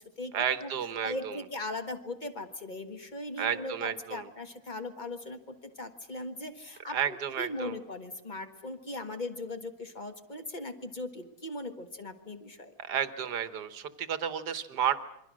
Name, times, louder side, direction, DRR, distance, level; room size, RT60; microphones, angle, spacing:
voice 1, 0.3-1.3 3.4-4.3 6.9-7.7 12.8-15.0, right 8 dB, 60° right, 12 dB, 1.7 m, -32 dB
voice 2, 1.0-12.7, left 2 dB, 25° left, 7 dB, 1.5 m, -39 dB
27.5 x 23.5 x 6.2 m, 0.77 s
omnidirectional pair, 2.1 m